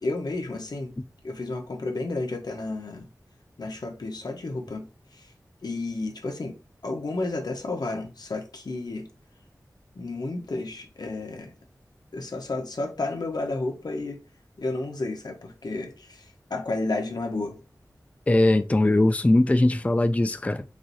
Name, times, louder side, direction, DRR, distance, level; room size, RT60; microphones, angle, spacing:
voice 1, 0.0-0.9 1.2-3.1 3.6-4.8 5.1-5.3 5.6-6.6 6.8-9.1 9.9-11.5 12.1-14.2 14.6-17.6, left 2 dB, 80° left, 1.1 m, -31 dB
voice 2, 18.3-20.6, left 1 dB, 20° left, 0.3 m, -20 dB
4.8 x 2.7 x 4.1 m
wide cardioid pair, 65°, 7 cm